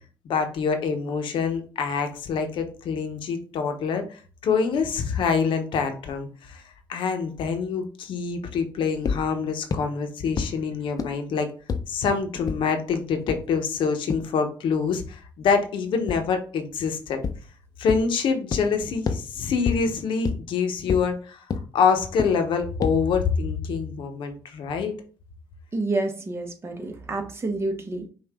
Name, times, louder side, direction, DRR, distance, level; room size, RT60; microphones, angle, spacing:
voice 1, 0.2-6.6 6.9-11.5 11.9-17.2 17.8-21.4 21.7-25.0, left 5 dB, 70° left, 6 dB, 0.9 m, -26 dB
sound 1, 9.1-9.2 9.7-9.8 10.4-10.5 11.0-11.1 11.7-11.8 12.5-12.6 13.3-13.4 14.1-14.2 16.1-16.2 17.2-17.3 17.9-18.0 18.5-18.6 19.1-19.2 19.7-19.8 20.3-20.4 20.9-21.0 21.5-21.6 22.2-22.3 22.8-22.9, left 5 dB, 45° left, 0.7 m, -25 dB
voice 2, 25.7-28.1, right 2 dB, 30° right, 3 dB, 1.2 m, -28 dB
5.6 x 2.6 x 3.6 m, 0.38 s
supercardioid pair, 70°, 9 cm